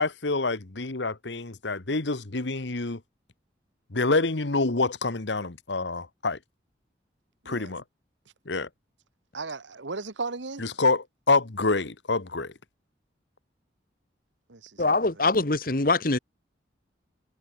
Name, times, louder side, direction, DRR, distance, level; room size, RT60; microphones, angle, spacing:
voice 1, 0.0-3.0 3.9-6.4 7.4-7.8 8.5-8.7 10.6-12.5, left 3 dB, 80° left, 1.4 m, -27 dB
voice 2, 9.3-10.6 14.5-15.2, right 3 dB, 85° right, 1.5 m, -36 dB
voice 3, 14.8-16.2, left 3 dB, 50° left, 1.4 m, -23 dB
head